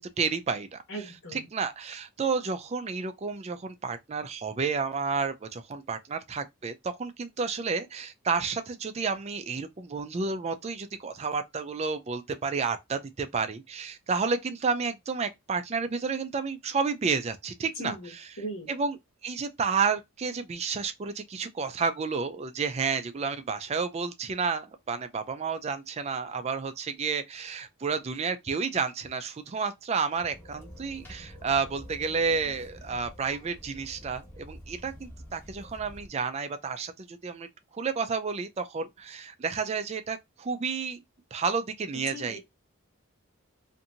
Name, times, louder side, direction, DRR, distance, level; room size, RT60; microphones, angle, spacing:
voice 1, 0.0-0.8 1.3-18.0 18.7-18.9 19.2-37.5 37.7-41.0 41.3-42.4, right 5 dB, 30° right, 0.3 m, -31 dB
voice 2, 0.9-1.5 17.7-18.1 18.4-18.7 41.9-42.4, equal, 70° left, 1.1 m, -38 dB
sound 1, 30.2-36.1, equal, 10° left, 1.0 m, -47 dB
2.7 x 2.6 x 2.5 m
head